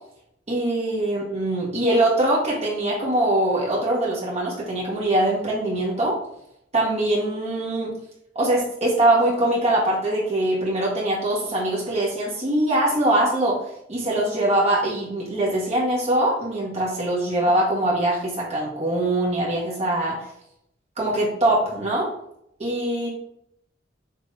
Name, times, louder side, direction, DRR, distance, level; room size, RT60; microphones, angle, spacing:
voice 1, 0.5-6.2 6.7-7.9 8.4-13.6 13.9-20.3 21.0-22.1 22.6-23.2, right 1 dB, 35° right, -5 dB, 1.8 m, -22 dB
6.8 x 3.2 x 4.8 m, 0.76 s
head